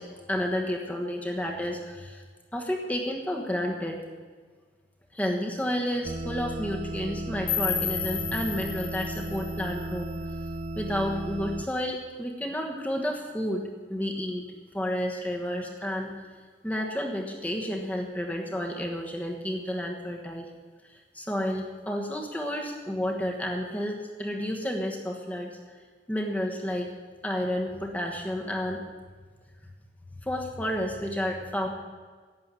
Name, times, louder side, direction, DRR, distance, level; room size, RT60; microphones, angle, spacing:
voice 1, 0.0-2.2 2.5-4.0 5.1-10.1 10.7-13.6 13.9-14.4 14.7-16.3 16.6-20.5 20.9-25.6 26.1-26.9 27.2-28.8 30.2-31.7, equal, 10° left, 1 dB, 1.2 m, -31 dB
sound 1, 6.0-11.6, right 1 dB, 35° right, 0.4 m, -35 dB
sound 2, 7.5-10.5, left 8 dB, 90° left, 3.0 m, -33 dB
11.5 x 7.6 x 9.8 m, 1.5 s
head